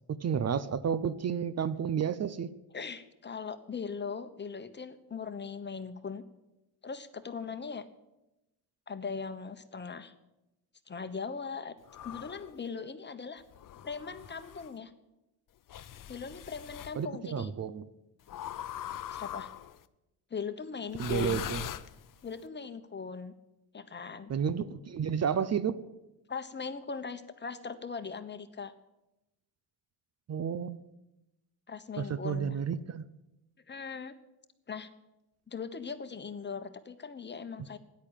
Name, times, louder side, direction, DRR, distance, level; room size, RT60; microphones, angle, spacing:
voice 1, 0.1-2.5 16.9-17.8 21.0-21.7 24.3-25.7 30.3-30.8 32.0-33.1, right 7 dB, 40° right, 15 dB, 0.7 m, -31 dB
voice 2, 2.7-6.2 6.8-7.9 8.9-10.1 10.9-11.7 12.0-13.4 13.8-14.9 16.1-17.5 19.1-19.5 20.3-21.5 22.2-23.3 23.7-24.3 26.3-28.7 31.7-32.6 33.7-34.1 34.7-34.9 35.5-37.8, left 5 dB, 25° left, 10 dB, 1.2 m, -39 dB
sound 1, 11.9-12.5 13.5-14.7 15.7-17.0 18.3-19.8 20.9-22.3, left 11 dB, 55° left, 0.8 m, -41 dB
13.5 x 10.5 x 9.0 m, 0.94 s
cardioid pair, 105°, 39 cm